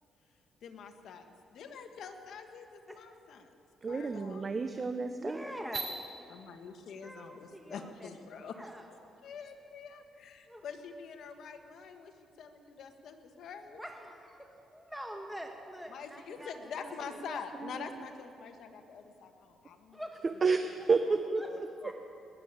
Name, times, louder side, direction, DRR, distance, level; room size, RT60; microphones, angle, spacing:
voice 1, 0.6-3.5 3.9-4.4 6.3-8.6 9.2-13.8 15.9-20.0 20.3-20.6 21.4-21.9, left 6 dB, 70° left, 6 dB, 1.4 m, -46 dB
voice 2, 3.8-5.4 5.7-5.8 20.4-21.4 21.8-21.9, right 4 dB, 35° right, 8 dB, 0.7 m, -30 dB
voice 3, 5.1-5.9 7.0-8.1 8.6-8.9 10.5-10.6 13.7-16.5 16.9-17.0 19.9-20.2 21.4-21.5 21.8-21.9, equal, ahead, 2 dB, 1.2 m, -44 dB
19.5 x 8.3 x 8.7 m, 2.9 s
cardioid pair, 90°, 0 cm